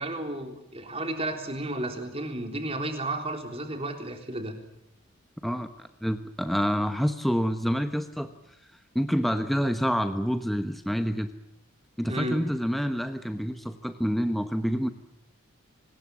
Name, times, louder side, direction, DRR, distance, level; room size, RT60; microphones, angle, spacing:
voice 1, 0.0-4.5 12.1-12.4, right 1 dB, 30° right, 5 dB, 3.7 m, -32 dB
voice 2, 5.4-8.3 8.9-11.3 12.0-14.9, equal, ahead, 8 dB, 1.0 m, -27 dB
25.0 x 20.5 x 7.7 m, 0.82 s
head